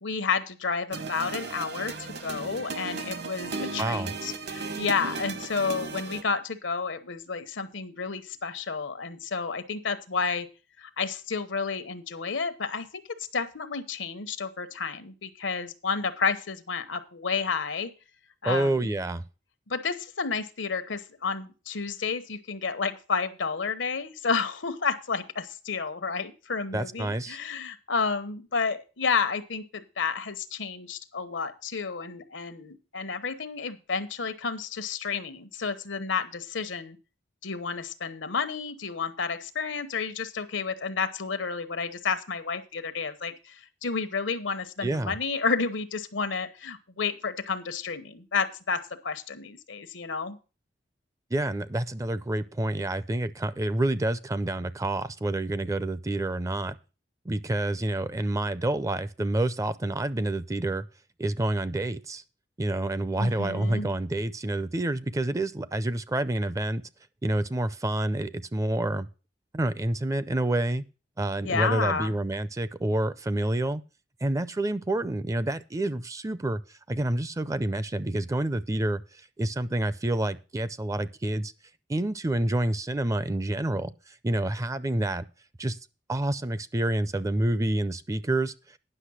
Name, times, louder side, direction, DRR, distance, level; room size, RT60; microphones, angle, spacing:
voice 1, 0.0-10.5 10.8-13.1 13.3-17.9 18.4-18.9 19.7-37.0 37.4-50.4 63.1-63.9 71.4-72.1, left 5 dB, 85° left, 11 dB, 1.0 m, -31 dB
sound 1, 0.9-6.2, right 3 dB, 60° right, 1.1 m, -36 dB
voice 2, 3.8-4.1 18.4-19.2 26.7-27.4 44.8-45.2 51.3-56.8 57.3-60.9 61.2-62.2 62.6-66.8 67.2-69.1 69.5-70.8 71.2-73.8 74.2-81.5 81.9-85.2 85.6-85.8 86.1-88.8, right 1 dB, 15° right, 16 dB, 0.4 m, -28 dB
10.0 x 6.2 x 6.2 m, 0.33 s
head